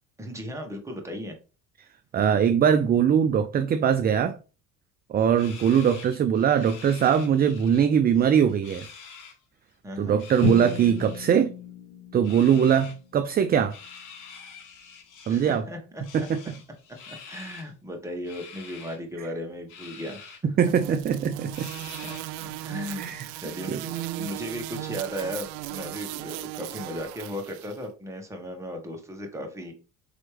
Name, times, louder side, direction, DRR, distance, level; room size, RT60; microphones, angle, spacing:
voice 1, 0.2-1.4 9.8-10.2 15.3-16.0 17.1-20.4 22.0-22.2 22.4-23.1 23.4-23.8 24.2-29.7, equal, 10° right, 1.3 m, -36 dB
voice 2, 2.1-4.4 5.1-8.9 10.0-11.5 12.1-13.7 15.3-15.6 16.1-16.4 20.4-21.7 23.0-23.3 23.7-24.3, right 8 dB, 30° right, 0.4 m, -22 dB
sound 1, 5.3-7.9 8.1-9.3 10.1-11.4 12.2-13.0 13.7-15.6 16.0-17.7 18.2-19.0 19.7-20.4 20.8-20.9 21.5-22.4, left 6 dB, 60° left, 1.4 m, -46 dB
Drum, 10.4-14.4, left 3 dB, 40° left, 1.6 m, -34 dB
sound 2, 20.6-27.8, right 15 dB, 85° right, 0.5 m, -37 dB
4.4 x 3.2 x 3.3 m
supercardioid pair, 90°, 34 cm